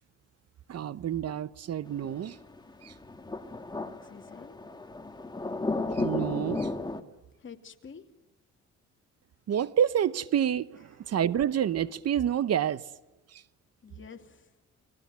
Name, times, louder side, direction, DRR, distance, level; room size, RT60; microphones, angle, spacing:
voice 1, 0.7-2.4 2.8-2.9 5.9-6.7 9.5-12.8 13.3-13.4, right 9 dB, 55° right, 0.9 m, -28 dB
sound 1, 1.9-7.0, left 2 dB, 15° left, 1.9 m, -34 dB
voice 2, 3.7-4.6 7.4-8.0 13.8-14.5, left 6 dB, 40° left, 2.7 m, -48 dB
30.0 x 20.5 x 9.5 m
cardioid pair, 90°, 30 cm